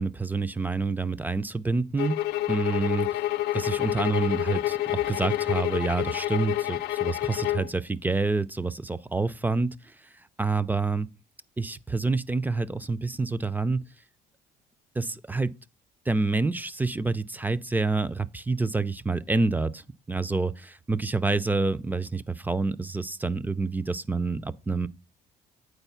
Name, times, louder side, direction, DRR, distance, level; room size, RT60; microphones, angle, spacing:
voice 1, 0.0-2.2 2.5-3.2 3.5-9.9 10.4-11.1 11.6-13.8 15.0-15.5 16.1-24.9, right 3 dB, 10° right, 0.4 m, -28 dB
sound 1, 2.0-7.7, left 14 dB, 75° left, 0.6 m, -28 dB
8.1 x 4.3 x 5.6 m
cardioid pair, 110°, 17 cm